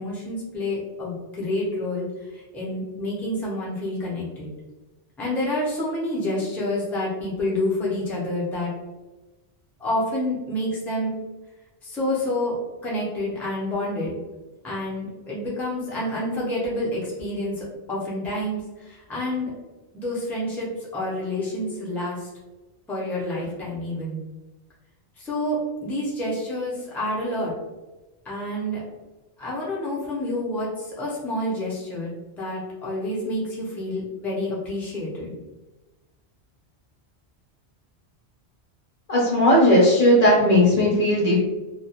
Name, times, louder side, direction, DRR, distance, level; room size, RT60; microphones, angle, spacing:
voice 1, 0.0-4.5 5.2-8.7 9.8-11.1 11.8-14.2 14.6-19.5 19.9-22.3 22.9-24.2 25.2-27.5 28.2-28.8 29.4-35.3, left 1 dB, ahead, -6 dB, 0.5 m, -28 dB
voice 2, 39.1-41.5, left 1 dB, 45° left, -4 dB, 0.7 m, -17 dB
2.3 x 2.3 x 2.8 m, 1.1 s
omnidirectional pair, 1.1 m